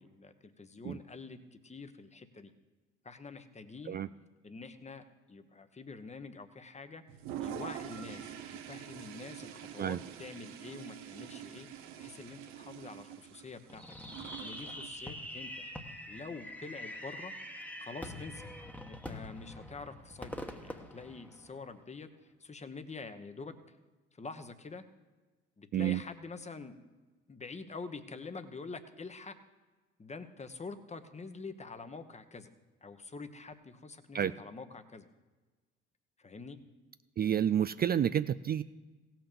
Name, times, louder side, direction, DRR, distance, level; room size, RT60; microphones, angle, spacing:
voice 1, 0.0-1.4 1.6-2.5 3.0-4.0 4.4-7.0 7.4-11.7 12.0-14.0 14.4-15.7 16.1-17.4 17.8-18.5 18.9-23.8 24.1-24.8 25.6-26.8 27.3-29.4 30.0-32.5 32.8-35.1 36.2-36.6, left 4 dB, 20° left, 10 dB, 1.2 m, -46 dB
Toilet flush, 7.1-15.0, right 10 dB, 80° right, 1.1 m, -45 dB
Fireworks, 13.7-21.8, left 1 dB, 5° left, 1.3 m, -44 dB
voice 2, 37.2-38.6, right 9 dB, 30° right, 13 dB, 0.4 m, -29 dB
16.5 x 6.0 x 6.9 m, 1.2 s
hypercardioid pair, 65°, 31 cm